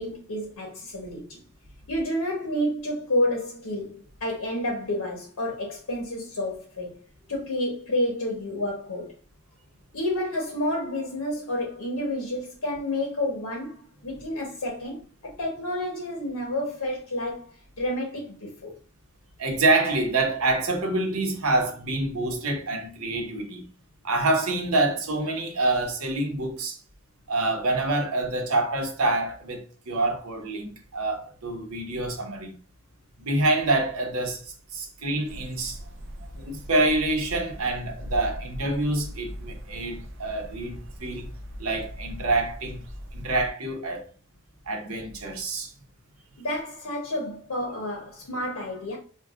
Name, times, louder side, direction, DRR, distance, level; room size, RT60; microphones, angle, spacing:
voice 1, 0.0-1.4 1.9-7.0 7.3-9.1 9.9-18.7 46.4-49.0, left 1 dB, 85° left, 1.0 m, -30 dB
voice 2, 19.4-23.6 24.0-26.8 27.3-32.6 33.2-34.4 34.7-35.8 36.3-41.3 41.6-42.8 43.1-44.1 44.7-45.7, right 2 dB, 80° right, 0.9 m, -26 dB
sound 1, 35.2-43.5, equal, 60° right, 0.6 m, -40 dB
4.5 x 2.3 x 2.4 m
head